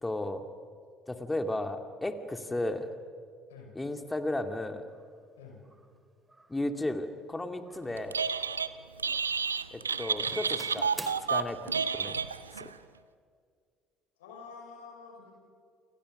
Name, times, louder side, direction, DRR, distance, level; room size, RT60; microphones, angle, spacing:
voice 1, 0.0-0.4 1.1-2.9 3.8-4.9 6.5-8.2 9.7-10.9 11.3-12.2 12.6-12.7, left 1 dB, 10° left, 7 dB, 2.3 m, -34 dB
Doorbell, 4.9-5.1 5.6-6.0 6.3-6.7 7.6-8.7 9.0-9.5 9.9-11.1, right 2 dB, 15° right, 2.3 m, -48 dB
Telephone, 8.0-8.7 9.0-12.7, right 6 dB, 85° right, 0.6 m, -30 dB
voice 2, 14.2-15.3, left 5 dB, 70° left, 2 dB, 5.3 m, -48 dB
29.0 x 25.5 x 6.5 m, 2.1 s
figure-of-eight pair, 60°, 0 cm